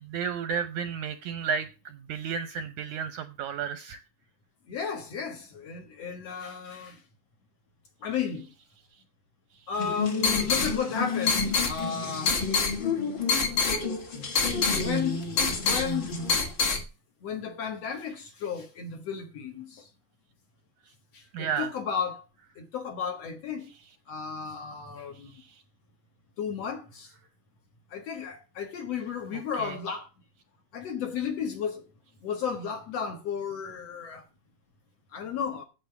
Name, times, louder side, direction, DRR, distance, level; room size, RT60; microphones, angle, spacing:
voice 1, 0.0-4.0 21.3-21.7 25.3-25.6 29.3-29.8, right 7 dB, 75° right, 1.8 m, -33 dB
voice 2, 4.7-7.0 8.0-8.5 9.7-12.4 14.7-15.2 15.6-16.2 17.2-19.9 21.1-22.2 22.6-23.7 24.1-25.3 26.4-27.1 27.9-30.1 30.7-31.8 32.2-34.2 35.1-35.6, left 7 dB, 55° left, 2.1 m, -33 dB
sound 1, 9.7-16.8, left 4 dB, 40° left, 2.1 m, -27 dB
9.1 x 8.3 x 7.0 m
omnidirectional pair, 4.2 m